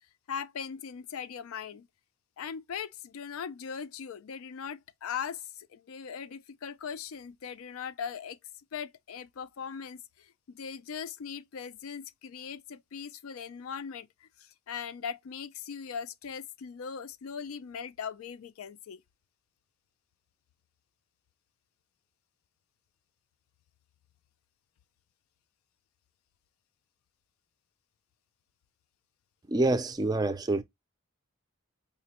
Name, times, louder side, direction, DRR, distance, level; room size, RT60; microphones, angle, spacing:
voice 1, 0.3-1.9 2.4-8.4 8.7-19.0, left 7 dB, 90° left, 0.4 m, -40 dB
voice 2, 29.5-30.6, right 2 dB, 20° right, 0.3 m, -26 dB
5.0 x 2.1 x 2.8 m
head